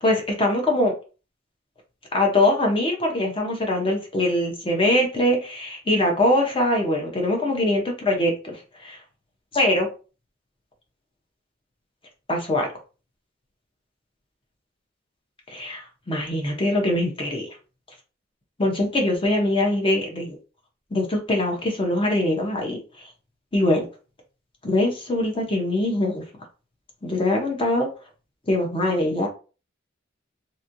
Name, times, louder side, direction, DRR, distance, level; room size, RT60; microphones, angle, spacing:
voice 1, 0.0-0.9 2.1-9.0 9.5-9.9 12.3-12.7 15.5-17.5 18.6-20.4 20.9-23.1 23.5-23.9 24.6-26.2 27.0-27.9 28.5-29.3, left 1 dB, 30° left, 2 dB, 0.8 m, -22 dB
3.0 x 2.7 x 2.6 m, 0.34 s
head